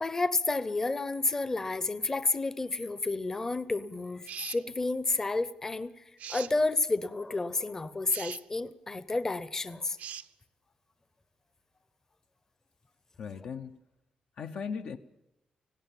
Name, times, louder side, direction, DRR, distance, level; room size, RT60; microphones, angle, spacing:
voice 1, 0.0-5.9 6.3-10.0, left 3 dB, 20° left, 15 dB, 0.8 m, -30 dB
sound 1, 4.2-4.6 6.2-6.5 8.1-8.4 10.0-10.3, right 9 dB, 90° right, 0.8 m, -41 dB
voice 2, 13.2-13.8 14.4-15.0, left 6 dB, 65° left, 6 dB, 0.8 m, -37 dB
18.5 x 16.5 x 9.1 m, 0.86 s
wide cardioid pair, 150°, 2 cm